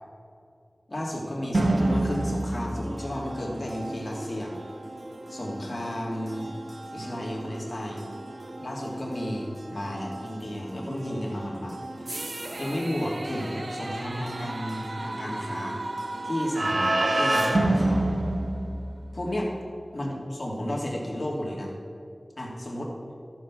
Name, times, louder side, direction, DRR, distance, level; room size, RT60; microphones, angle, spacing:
voice 1, 0.9-4.5 5.3-6.5 6.9-8.1 8.6-12.2 12.6-18.1 19.1-19.5 19.9-21.7 22.4-22.9, equal, 50° left, -3 dB, 2.7 m, -33 dB
sound 1, 1.5-19.3, right 1 dB, 65° right, 1.0 m, -30 dB
13.0 x 6.2 x 6.1 m, 2.5 s
wide cardioid pair, 45°, 0 cm